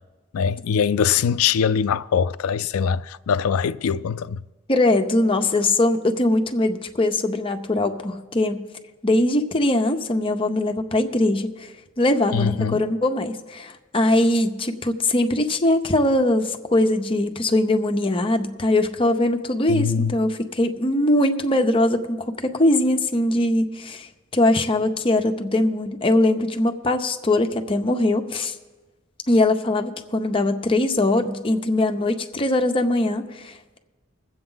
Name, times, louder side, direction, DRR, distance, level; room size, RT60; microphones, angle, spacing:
voice 1, 0.3-4.4 12.3-12.8 19.7-20.2, left 7 dB, 85° left, 0.4 m, -22 dB
voice 2, 4.7-8.6 9.0-11.5 12.0-22.2 22.4-24.1 24.3-28.5 29.3-33.8, left 1 dB, 25° left, 0.7 m, -21 dB
20.5 x 7.9 x 3.9 m
head